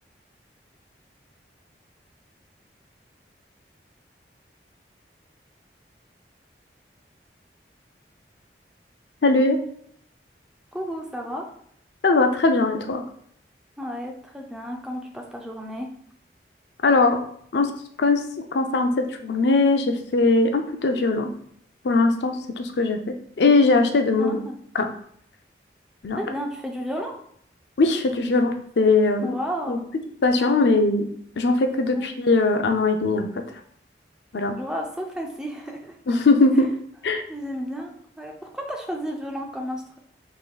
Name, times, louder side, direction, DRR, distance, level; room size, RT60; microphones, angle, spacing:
voice 1, 9.2-9.6 12.0-13.0 16.8-17.2 17.5-17.7 18.0-18.2 18.5-21.3 21.8-23.0 23.4-24.4 24.8-24.9 26.0-26.2 27.8-29.4 29.7-29.8 30.2-31.0 31.4-33.3 34.3-34.6 36.1-36.7 37.0-37.2, left 3 dB, 75° left, 5 dB, 0.5 m, -20 dB
voice 2, 10.7-11.5 13.8-15.9 24.2-24.5 26.2-27.2 29.2-29.9 30.3-30.7 31.9-32.1 34.6-36.0 37.3-40.0, equal, 5° right, 1 dB, 0.5 m, -32 dB
5.0 x 3.7 x 2.3 m, 0.65 s
head